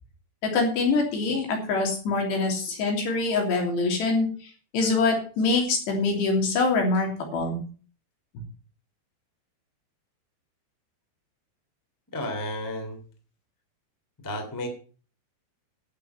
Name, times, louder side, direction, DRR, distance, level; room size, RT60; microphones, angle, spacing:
voice 1, 0.4-4.3 4.7-7.6, left 3 dB, 70° left, 1 dB, 5.2 m, -24 dB
voice 2, 12.1-13.0 14.2-14.7, left 1 dB, 5° left, 4 dB, 1.8 m, -32 dB
12.0 x 8.3 x 5.9 m, 0.39 s
omnidirectional pair, 5.2 m